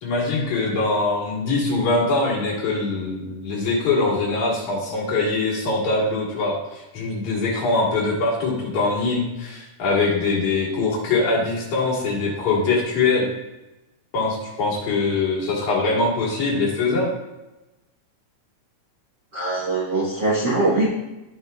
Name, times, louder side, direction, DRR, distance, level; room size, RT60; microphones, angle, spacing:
voice 1, 0.0-13.2 14.1-17.1, left 3 dB, 65° left, -5 dB, 3.2 m, -23 dB
voice 2, 19.3-20.9, right 2 dB, 55° right, -7 dB, 1.2 m, -22 dB
12.5 x 5.2 x 2.3 m, 1.0 s
omnidirectional pair, 3.7 m